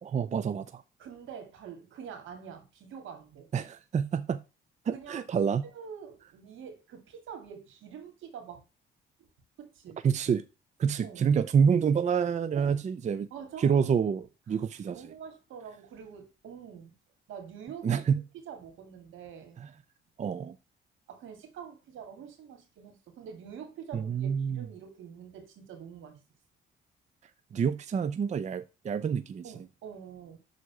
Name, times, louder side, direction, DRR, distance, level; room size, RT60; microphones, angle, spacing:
voice 1, 0.0-0.8 3.5-4.4 4.9-5.7 10.0-10.5 10.8-13.3 13.6-15.0 17.8-18.2 20.2-20.6 23.9-24.7 27.5-29.4, right 7 dB, 35° right, 0.5 m, -27 dB
voice 2, 1.0-3.5 4.9-5.2 5.7-8.6 9.6-10.0 11.0-11.3 12.6-12.8 13.3-13.9 14.5-14.6 14.9-17.0 17.3-18.0 18.4-19.6 21.1-26.2 29.4-30.4, right 7 dB, 80° right, 2.4 m, -45 dB
6.5 x 4.0 x 6.1 m
cardioid pair, 90°, 20 cm